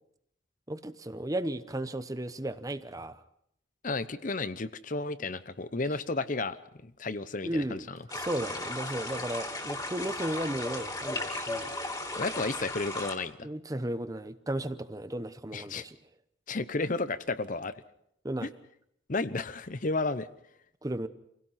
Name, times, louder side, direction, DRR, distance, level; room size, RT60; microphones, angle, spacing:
voice 1, 0.7-3.2 7.4-11.7 13.4-16.0 18.2-18.5 20.8-21.1, right 1 dB, 20° right, 12 dB, 0.8 m, -35 dB
voice 2, 3.8-6.6 6.8-8.0 12.2-13.5 15.5-15.8 16.5-17.7 18.4-18.5 19.1-20.3, left 3 dB, 45° left, 15 dB, 0.8 m, -32 dB
sound 1, 8.1-13.1, left 2 dB, 20° left, 2.7 m, -36 dB
27.0 x 17.0 x 5.8 m, 0.73 s
head